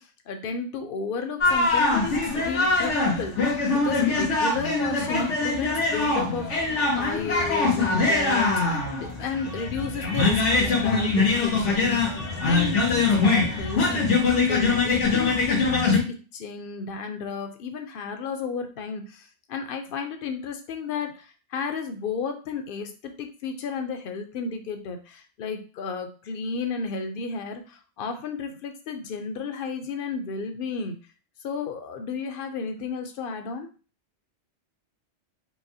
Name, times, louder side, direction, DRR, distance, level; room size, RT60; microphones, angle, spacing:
voice 1, 0.0-3.5 3.8-12.2 12.5-14.1 14.5-16.0 16.3-31.0 31.4-33.7, left 5 dB, 60° left, 6 dB, 0.7 m, -33 dB
sound 1, 1.4-16.0, left 3 dB, 90° left, 1.3 m, -23 dB
4.7 x 2.0 x 2.7 m, 0.36 s
omnidirectional pair, 1.2 m